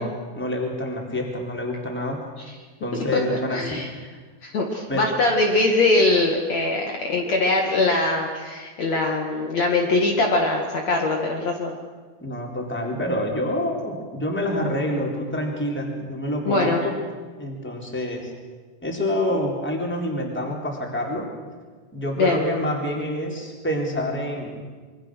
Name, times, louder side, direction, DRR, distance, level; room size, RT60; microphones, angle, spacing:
voice 1, 0.0-2.2 2.8-3.6 4.0-4.2 4.9-5.0 12.2-16.7 17.4-18.3 18.8-21.3 21.9-24.6, left 1 dB, 5° left, 0 dB, 3.5 m, -27 dB
voice 2, 3.5-3.9 4.4-11.8 16.5-16.8 22.2-22.5, left 2 dB, 50° left, 0 dB, 2.9 m, -22 dB
27.0 x 23.5 x 6.4 m, 1.4 s
omnidirectional pair, 4.3 m